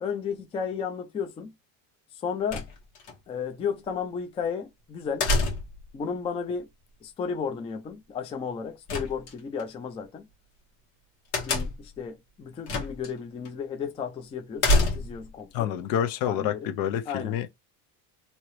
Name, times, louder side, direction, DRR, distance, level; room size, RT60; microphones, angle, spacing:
voice 1, 0.0-1.5 2.1-2.7 3.3-5.3 5.9-6.7 7.0-10.2 11.4-15.7 16.2-16.7 17.1-17.4, left 6 dB, 15° left, 0.3 m, -33 dB
sound 1, 2.5-3.1 5.2-5.9 8.9-9.6 11.3-12.0 12.7-13.1 13.5-13.6 14.6-15.3, left 2 dB, 90° left, 1.4 m, -26 dB
voice 2, 15.5-17.5, left 10 dB, 70° left, 0.6 m, -28 dB
2.9 x 2.8 x 3.0 m
cardioid pair, 155°, 36 cm